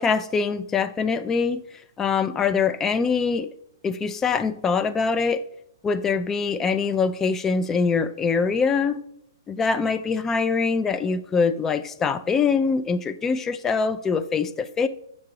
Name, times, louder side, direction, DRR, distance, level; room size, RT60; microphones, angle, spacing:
voice 1, 0.0-1.6 2.0-3.5 3.8-5.4 5.8-9.0 9.5-14.9, left 5 dB, 15° left, 0.4 m, -23 dB
7.4 x 3.7 x 4.7 m
hypercardioid pair, 120°, 2 cm